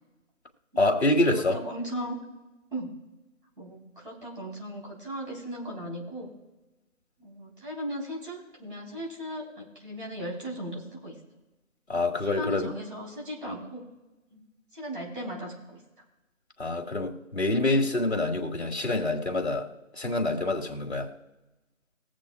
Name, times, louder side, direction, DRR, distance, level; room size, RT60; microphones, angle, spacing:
voice 1, 0.8-1.6 11.9-12.7 16.6-19.7 19.9-21.1, left 2 dB, 55° left, 3 dB, 1.8 m, -26 dB
voice 2, 1.3-2.2 2.7-2.9 3.6-6.3 7.2-11.2 12.4-13.8 14.3-14.4 14.7-15.8, equal, 40° right, -2 dB, 3.7 m, -37 dB
21.0 x 7.8 x 2.3 m, 1.1 s
figure-of-eight pair, 175°, 40 cm